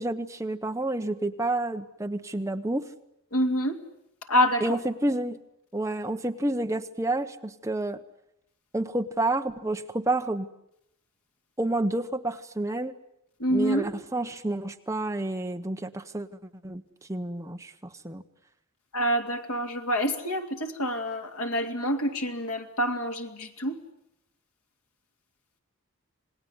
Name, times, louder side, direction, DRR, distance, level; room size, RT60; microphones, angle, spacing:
voice 1, 0.0-2.8 4.6-5.4 5.7-8.0 8.7-10.5 11.6-12.9 13.5-16.3 16.6-16.8 17.1-18.2, right 2 dB, 15° right, 7 dB, 0.9 m, -29 dB
voice 2, 3.3-3.8 4.3-4.6 13.4-13.9 18.9-23.8, equal, 80° left, 4 dB, 2.9 m, -27 dB
27.5 x 20.0 x 9.7 m, 0.81 s
head